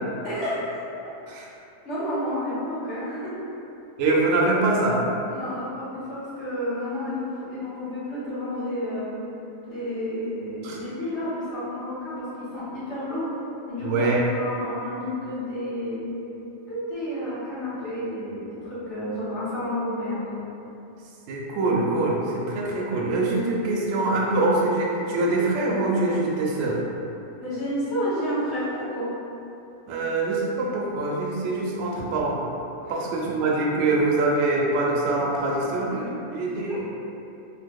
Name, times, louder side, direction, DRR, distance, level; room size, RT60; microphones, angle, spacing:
voice 1, 0.2-0.8 1.8-3.3 5.3-9.1 9.7-12.1 12.5-13.3 13.7-20.4 27.4-29.1 32.9-33.0 36.7-36.8, left 1 dB, 50° left, -11 dB, 1.3 m, -30 dB
voice 2, 4.0-5.0 10.6-10.8 13.8-14.2 21.3-26.8 29.9-32.4 32.9-36.9, right 2 dB, 65° right, -3 dB, 0.7 m, -24 dB
2.9 x 2.1 x 3.4 m, 2.8 s
omnidirectional pair, 1.5 m